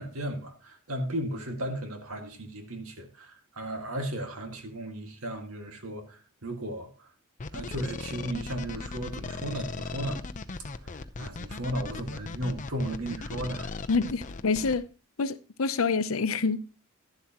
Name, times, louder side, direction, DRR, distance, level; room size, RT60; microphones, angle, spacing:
voice 1, 0.0-7.1 7.5-10.2 10.7-13.7, right 1 dB, 90° right, 1.9 m, -35 dB
sound 1, 7.4-14.8, left 3 dB, 35° left, 0.6 m, -38 dB
voice 2, 13.9-14.8 15.2-16.7, left 4 dB, 75° left, 0.7 m, -27 dB
11.5 x 11.0 x 2.9 m
head